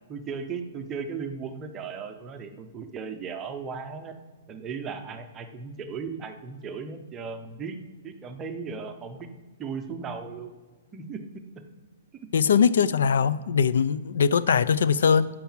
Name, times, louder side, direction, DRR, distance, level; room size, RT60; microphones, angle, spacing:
voice 1, 0.1-4.1 4.5-7.8 8.0-9.3 9.6-10.6 10.9-11.2 12.2-12.3, right 5 dB, 15° right, 6 dB, 0.6 m, -36 dB
voice 2, 12.3-15.3, left 6 dB, 70° left, 17 dB, 0.4 m, -21 dB
11.5 x 4.7 x 7.2 m, 1.4 s
hypercardioid pair, 180°, 0 cm